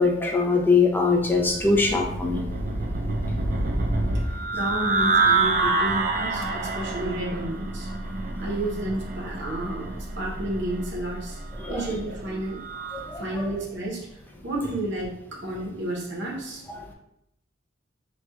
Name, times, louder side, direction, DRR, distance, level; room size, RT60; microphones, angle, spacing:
voice 1, 0.0-2.4 11.6-11.8 12.9-13.5, left 4 dB, 10° left, 0 dB, 0.4 m, -22 dB
sound 1, 1.2-13.1, right 3 dB, 45° right, 0.5 m, -27 dB
voice 2, 4.5-7.9 8.4-11.4 11.7-12.6 13.2-14.1 14.4-16.6, right 1 dB, 60° right, -3 dB, 0.8 m, -31 dB
4.2 x 2.3 x 2.3 m, 0.79 s
head